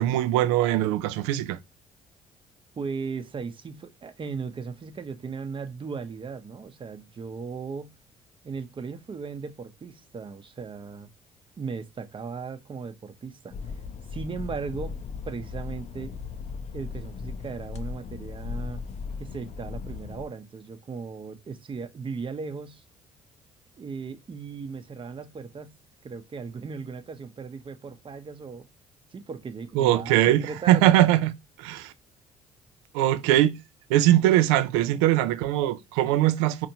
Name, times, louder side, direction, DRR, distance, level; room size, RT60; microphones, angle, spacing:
voice 1, 0.0-1.6 29.8-31.3 31.6-31.9 32.9-33.6 33.9-36.7, right 13 dB, 80° right, 0.4 m, -21 dB
voice 2, 2.8-7.9 8.4-11.1 11.6-13.6 14.1-16.2 16.7-18.8 19.2-22.8 23.8-28.7 29.1-30.9, right 5 dB, 35° right, 0.7 m, -37 dB
sound 1, 13.5-20.3, left 5 dB, 50° left, 0.5 m, -37 dB
4.2 x 2.5 x 2.8 m
hypercardioid pair, 55°, 15 cm